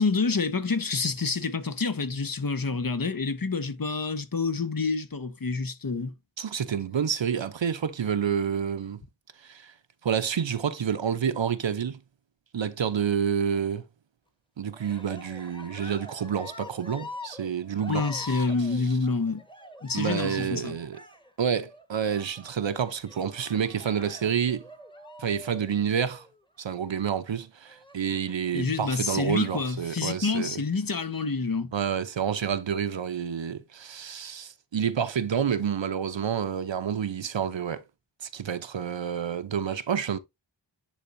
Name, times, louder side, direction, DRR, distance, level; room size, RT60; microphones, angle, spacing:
voice 1, 0.0-6.1 17.9-19.4 19.8-20.8 28.5-31.7, left 4 dB, 50° left, 1.2 m, -28 dB
voice 2, 6.4-9.0 9.4-9.7 10.0-12.0 12.5-13.8 14.6-18.5 19.9-21.0 21.4-24.6 25.2-26.3 26.6-30.5 31.7-37.8 38.2-40.2, right 7 dB, 75° right, 0.9 m, -29 dB
Cheering, 14.7-26.4 27.6-28.5 29.2-29.9, left 2 dB, 10° left, 1.4 m, -45 dB
10.5 x 4.2 x 2.7 m
wide cardioid pair, 65°, 45 cm